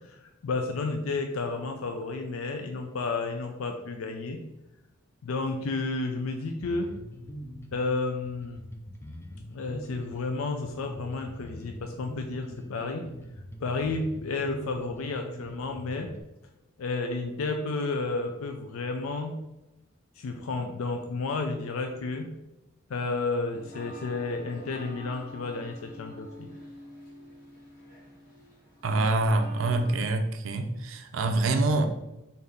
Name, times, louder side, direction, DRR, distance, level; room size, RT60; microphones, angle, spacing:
voice 1, 0.1-4.4 5.2-6.9 7.7-8.6 9.5-13.1 13.6-16.1 16.8-19.4 20.2-22.3 22.9-26.5, left 3 dB, 85° left, 4 dB, 0.4 m, -31 dB
Bass guitar, 6.6-16.2, equal, 10° left, 0.4 m, -43 dB
sound 1, 23.5-30.1, left 1 dB, 45° left, 1.2 m, -47 dB
voice 2, 28.8-31.8, right 2 dB, 70° right, 6 dB, 0.5 m, -25 dB
3.9 x 2.7 x 3.4 m, 0.95 s
head